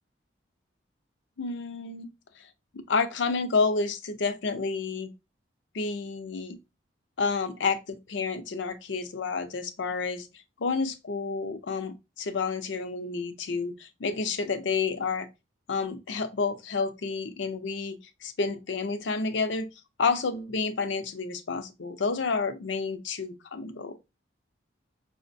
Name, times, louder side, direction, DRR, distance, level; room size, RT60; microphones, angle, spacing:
voice 1, 1.4-2.5 2.9-5.1 5.7-6.6 7.2-10.3 10.6-15.3 15.7-19.7 20.0-24.0, left 4 dB, 75° left, 0.5 m, -30 dB
5.7 x 2.1 x 2.6 m
head